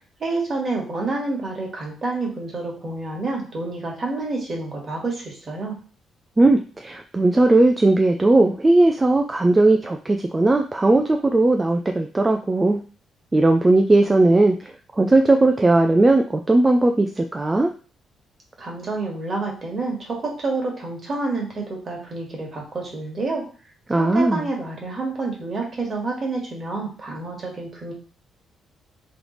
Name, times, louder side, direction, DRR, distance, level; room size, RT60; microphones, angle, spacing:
voice 1, 0.2-5.8 18.6-23.4 23.9-27.9, right 3 dB, 40° right, -1 dB, 1.6 m, -28 dB
voice 2, 6.4-12.8 13.3-14.5 15.0-17.7 23.9-24.4, right 2 dB, 20° right, 4 dB, 0.4 m, -17 dB
3.3 x 3.1 x 3.9 m, 0.39 s
cardioid pair, 90°, 0 cm